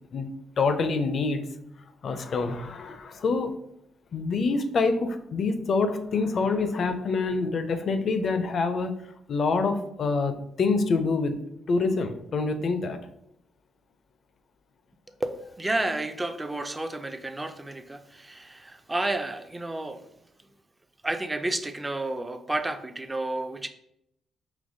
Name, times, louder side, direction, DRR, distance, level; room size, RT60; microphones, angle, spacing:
voice 1, 0.6-1.5 2.0-3.5 4.1-9.0 9.3-11.4 11.7-13.0, left 4 dB, 55° left, 9 dB, 0.4 m, -26 dB
voice 2, 15.2-20.0 21.0-23.7, right 2 dB, 15° right, 9 dB, 0.4 m, -31 dB
5.0 x 3.0 x 2.6 m, 0.79 s
cardioid pair, 90°, 0 cm